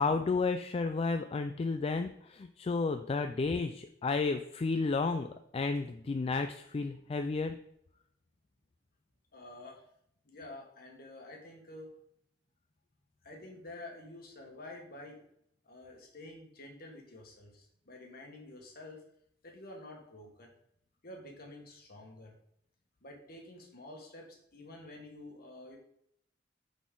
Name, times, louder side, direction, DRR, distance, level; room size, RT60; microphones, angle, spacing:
voice 1, 0.0-7.6, left 4 dB, 35° left, 8 dB, 0.3 m, -32 dB
voice 2, 9.3-9.8 10.2-11.9 13.2-15.2 15.6-19.0 19.4-20.5 21.0-22.3 23.0-25.8, left 2 dB, 55° left, 1 dB, 1.6 m, -49 dB
8.3 x 4.1 x 3.8 m, 0.73 s
head